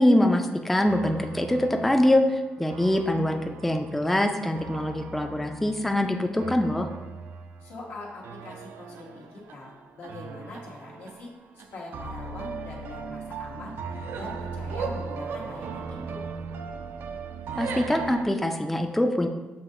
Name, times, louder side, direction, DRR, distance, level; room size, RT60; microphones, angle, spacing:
voice 1, 0.0-6.9 17.6-19.3, left 1 dB, 5° left, 4 dB, 0.3 m, -24 dB
sound 1, 0.9-18.2, right 4 dB, 75° right, 0.3 m, -38 dB
voice 2, 7.6-13.7 14.1-16.2, left 2 dB, 90° left, -4 dB, 1.2 m, -42 dB
7.5 x 2.7 x 2.5 m, 1.2 s
cardioid pair, 115°, 4 cm